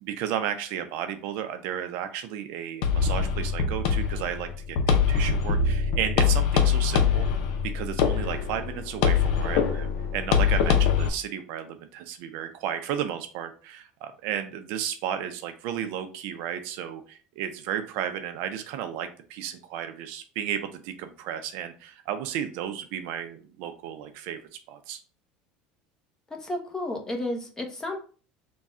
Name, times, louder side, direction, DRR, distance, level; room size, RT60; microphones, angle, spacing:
voice 1, 0.0-7.3 7.6-24.4 24.7-25.0, right 9 dB, 70° right, 8 dB, 0.5 m, -33 dB
sound 1, 2.8-11.1, left 6 dB, 75° left, 0.6 m, -23 dB
voice 2, 26.3-28.0, left 1 dB, 15° left, 3 dB, 0.9 m, -32 dB
3.6 x 2.3 x 4.2 m, 0.39 s
supercardioid pair, 120°, 4 cm